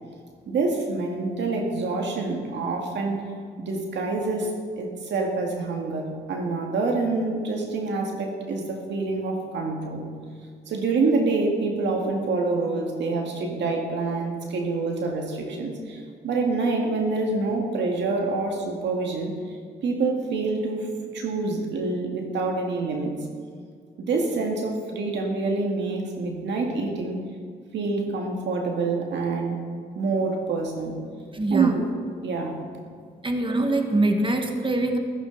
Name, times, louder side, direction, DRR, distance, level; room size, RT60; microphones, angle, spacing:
voice 1, 0.5-3.2 3.6-10.1 10.7-19.6 19.8-23.2 24.0-27.2 27.7-29.6 30.0-31.0 31.5-31.8 32.2-32.8, right 3 dB, 80° right, 2 dB, 1.9 m, -26 dB
voice 2, 31.3-31.7 33.2-35.0, right 2 dB, 30° right, 4 dB, 1.6 m, -23 dB
14.5 x 14.0 x 4.0 m, 2.1 s
cardioid pair, 60°, 18 cm